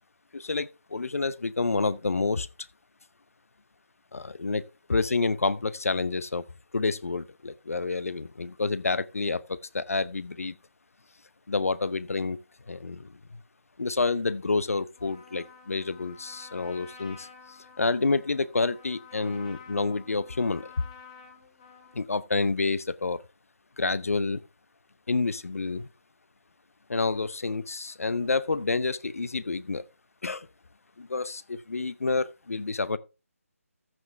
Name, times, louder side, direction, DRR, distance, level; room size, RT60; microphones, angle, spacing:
voice 1, 0.3-2.5 4.1-4.6 4.9-6.4 6.7-10.5 11.5-12.4 12.7-13.4 13.8-17.3 17.8-20.7 21.9-23.2 23.8-24.4 25.1-25.9 26.9-29.8 30.2-30.5 31.0-33.0, left 3 dB, 70° left, 0.8 m, -28 dB
Trumpet, 15.0-22.1, left 6 dB, 25° left, 2.6 m, -51 dB
14.0 x 7.6 x 3.4 m
figure-of-eight pair, 160°, 8 cm